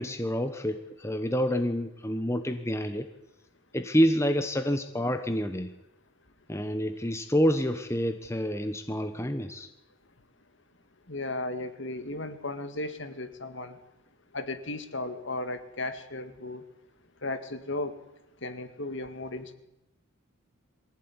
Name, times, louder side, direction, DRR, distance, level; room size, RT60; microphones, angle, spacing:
voice 1, 0.0-3.1 3.7-5.7 6.5-9.7, equal, 10° left, 8 dB, 1.1 m, -28 dB
voice 2, 11.1-13.7 14.3-16.6 17.2-17.9 18.4-19.5, left 2 dB, 55° left, 9 dB, 2.1 m, -35 dB
23.5 x 15.5 x 9.8 m, 0.90 s
head